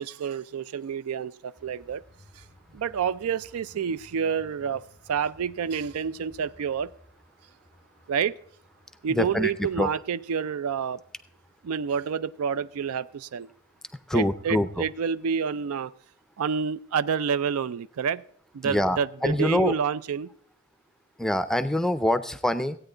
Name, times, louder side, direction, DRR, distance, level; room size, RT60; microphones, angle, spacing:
voice 1, 0.0-2.0 2.4-2.5 2.7-4.8 5.1-6.9 8.1-8.3 9.0-11.0 11.6-13.5 14.1-15.9 16.4-18.2 18.5-20.3, right 7 dB, 85° right, 18 dB, 0.4 m, -28 dB
sound 1, 1.6-15.5, equal, 50° right, 1.6 m, -58 dB
voice 2, 9.1-9.5 9.8-9.9 14.1-14.9 18.6-19.7 21.2-22.8, left 1 dB, ahead, 13 dB, 0.4 m, -25 dB
15.5 x 8.9 x 3.8 m, 0.65 s
head